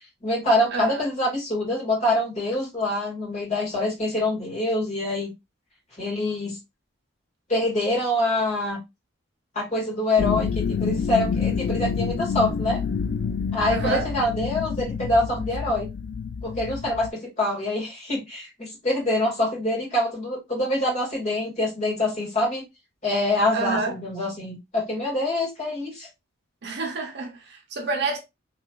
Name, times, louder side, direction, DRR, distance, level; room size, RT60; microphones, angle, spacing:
voice 1, 0.2-5.3 6.0-6.6 7.5-8.8 9.5-12.8 13.5-15.9 16.4-22.6 23.0-26.1, left 1 dB, 35° left, 1.9 m, -25 dB
voice 2, 0.7-1.0 13.7-14.1 23.5-23.9 26.6-28.2, right 3 dB, 55° right, 0.8 m, -28 dB
sound 1, 10.2-17.1, left 6 dB, 55° left, 0.3 m, -27 dB
3.1 x 3.0 x 2.3 m
head